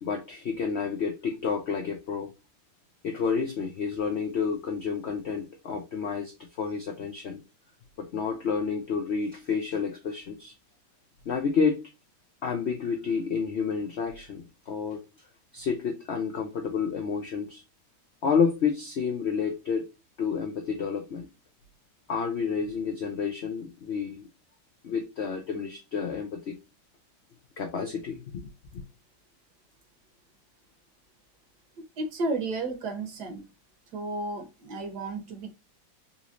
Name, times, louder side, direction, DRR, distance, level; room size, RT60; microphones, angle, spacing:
voice 1, 0.0-2.3 3.0-7.4 8.0-10.5 11.3-11.8 12.4-15.0 15.5-17.6 18.2-19.9 20.2-21.3 22.1-24.2 24.8-26.6 27.6-28.8, left 6 dB, 80° left, 0.6 m, -30 dB
voice 2, 32.0-33.4 33.9-35.5, right 2 dB, 65° right, 1.6 m, -32 dB
4.0 x 2.9 x 2.5 m
omnidirectional pair, 1.9 m